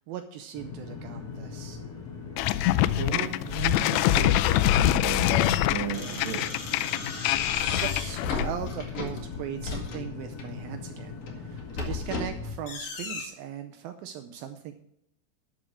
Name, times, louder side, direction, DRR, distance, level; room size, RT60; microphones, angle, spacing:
voice 1, 0.0-1.8 7.7-14.7, right 10 dB, 85° right, 7 dB, 2.1 m, -39 dB
sound 1, 0.5-12.3, left 5 dB, 30° left, 1.7 m, -40 dB
sound 2, 2.4-8.6, left 13 dB, 85° left, 2.7 m, -24 dB
voice 2, 2.9-6.4, right 6 dB, 60° right, 0 dB, 3.3 m, -34 dB
sound 3, 5.9-10.5 11.1-13.2, left 4 dB, 50° left, 2.1 m, -35 dB
12.0 x 6.4 x 6.2 m, 0.75 s
omnidirectional pair, 5.0 m